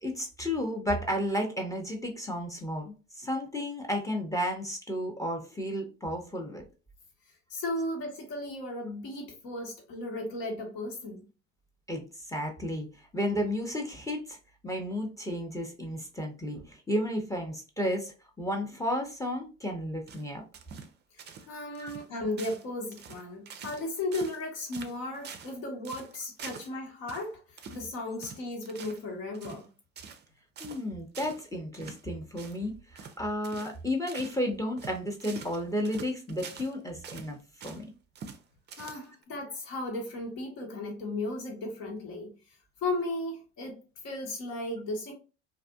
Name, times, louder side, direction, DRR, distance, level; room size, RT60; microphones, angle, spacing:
voice 1, 0.0-6.6 11.9-12.9 13.1-14.4 14.6-20.4 21.8-22.0 30.6-37.4 37.6-37.9, equal, 10° left, 0.7 m, -33 dB
voice 2, 7.5-11.2 21.5-27.4 27.7-29.6 38.8-42.3 42.8-43.8 44.0-45.1, left 2 dB, 60° left, 1.2 m, -35 dB
sound 1, 20.1-20.9 21.2-21.5 21.7-22.1 22.4-22.7 22.9-23.8 24.1-24.4 24.7-25.6 25.8-26.7 27.1-27.3 27.6-27.8 28.2-29.0 29.3-29.6 30.0-30.3 30.6-30.8 31.1-31.4 31.7-32.0 32.3-32.6 33.0-33.2 33.4-33.8 34.1-34.4 34.8-36.7 37.0-37.8 38.2-38.4 38.7-39.2, right 6 dB, 30° right, 0.4 m, -45 dB
2.6 x 2.5 x 2.3 m
hypercardioid pair, 70°, 38 cm